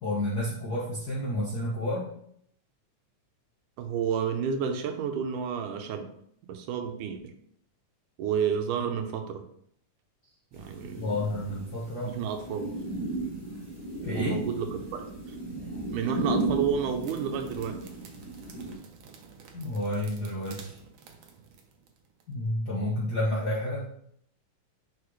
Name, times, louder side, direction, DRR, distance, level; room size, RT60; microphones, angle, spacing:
voice 1, 0.0-2.1 8.8-8.9 10.9-12.1 14.0-14.3 19.5-20.8 22.3-23.9, left 1 dB, 55° left, -6 dB, 1.1 m, -30 dB
voice 2, 3.8-6.1 6.5-7.3 8.2-9.4 10.5-11.2 12.1-12.7 14.1-15.0 15.9-17.9, right 7 dB, 85° right, 6 dB, 2.4 m, -31 dB
sound 1, 10.5-18.7, right 2 dB, 10° right, 1.4 m, -35 dB
sound 2, 17.0-22.3, right 5 dB, 70° right, 1.4 m, -51 dB
9.8 x 4.4 x 3.2 m, 0.68 s
omnidirectional pair, 3.5 m